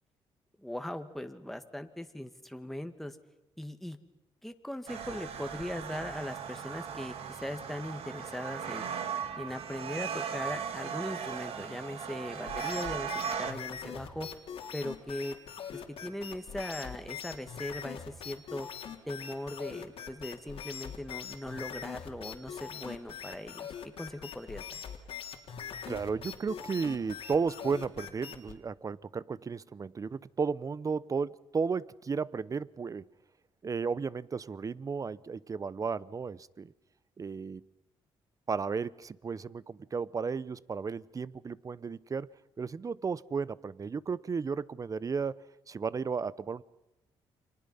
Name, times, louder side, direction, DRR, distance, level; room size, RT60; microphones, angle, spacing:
voice 1, 0.6-3.2 3.6-4.0 4.4-8.9 9.4-14.3 14.7-15.4 15.7-18.7 19.1-23.7 24.0-24.8, left 1 dB, ahead, 7 dB, 2.0 m, -39 dB
sound 1, 4.9-13.5, right 7 dB, 70° right, 2.1 m, -38 dB
sound 2, 12.5-28.6, left 8 dB, 70° left, 3.2 m, -42 dB
voice 2, 25.9-33.0 33.6-36.7 37.2-37.6 38.5-42.3 42.6-45.4 45.7-46.6, right 5 dB, 35° right, 19 dB, 0.8 m, -34 dB
30.0 x 24.5 x 5.7 m, 0.92 s
cardioid pair, 85°, 10 cm